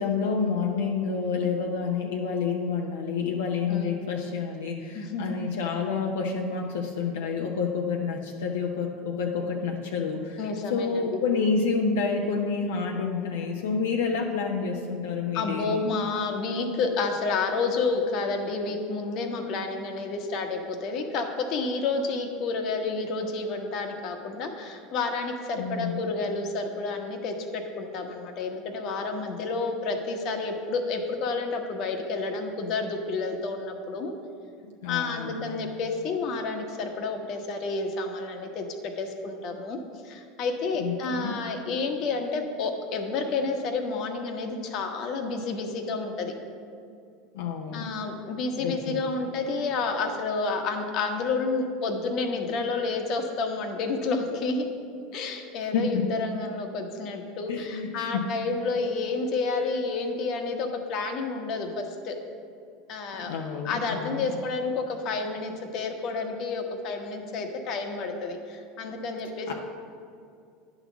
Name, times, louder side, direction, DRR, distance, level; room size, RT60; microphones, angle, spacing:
voice 1, 0.0-10.4 10.7-15.8 25.6-26.0 34.8-35.7 40.8-41.4 47.3-47.9 48.6-49.0 55.6-56.1 57.5-58.3 63.2-64.3 69.5-69.6, left 5 dB, 85° left, 0 dB, 0.7 m, -29 dB
voice 2, 3.7-4.1 4.9-5.4 10.4-11.2 15.3-34.1 34.9-38.6 39.0-39.8 40.0-46.3 47.7-54.7 55.1-62.2 62.9-63.3 63.6-69.5, left 3 dB, 55° left, 4 dB, 1.1 m, -30 dB
10.0 x 4.1 x 7.1 m, 2.4 s
hypercardioid pair, 100°, 0 cm